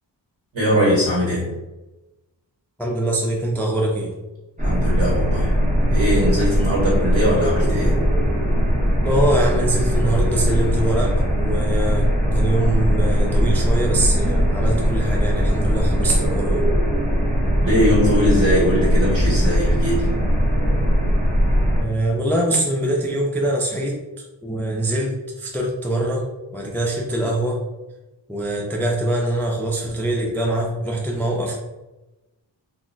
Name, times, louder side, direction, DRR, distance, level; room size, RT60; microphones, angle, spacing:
voice 1, 0.5-1.5 4.6-5.5 5.9-8.0 16.2-16.3 17.6-20.1, equal, 85° right, -6 dB, 1.1 m, -21 dB
voice 2, 2.8-4.1 9.0-16.6 21.8-24.0 24.4-26.2 26.5-27.6 28.3-31.5, right 1 dB, 5° left, -2 dB, 0.3 m, -23 dB
sound 1, 4.6-21.8, equal, 20° right, 0.7 m, -19 dB
2.3 x 2.0 x 3.7 m, 1.1 s
wide cardioid pair, 95°, 45 cm